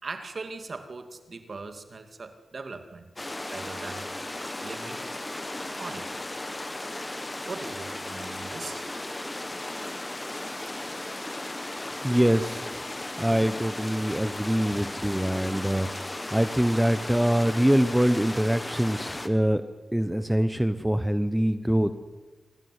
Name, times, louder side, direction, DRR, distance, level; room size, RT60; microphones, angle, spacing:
voice 1, 0.0-3.1 3.5-4.1 4.6-5.0 5.8-6.1 7.4-8.8, right 3 dB, 45° right, 8 dB, 2.3 m, -39 dB
sound 1, 3.2-19.3, left 1 dB, 15° left, 1.5 m, -36 dB
voice 2, 12.0-19.6 19.9-22.0, equal, 5° right, 10 dB, 0.9 m, -24 dB
26.5 x 18.5 x 9.6 m, 1.2 s
wide cardioid pair, 165°, 0 cm